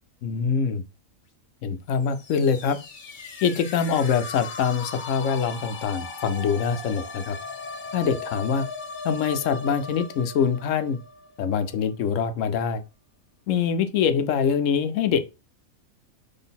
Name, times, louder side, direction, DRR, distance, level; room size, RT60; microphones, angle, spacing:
voice 1, 0.2-0.8 1.6-2.8 3.4-7.4 7.9-8.7 9.0-11.0 11.4-12.8 13.5-15.2, left 6 dB, 70° left, 0.9 m, -24 dB
sound 1, 2.0-11.7, left 4 dB, 45° left, 0.8 m, -38 dB
3.8 x 3.4 x 4.0 m
omnidirectional pair, 1.4 m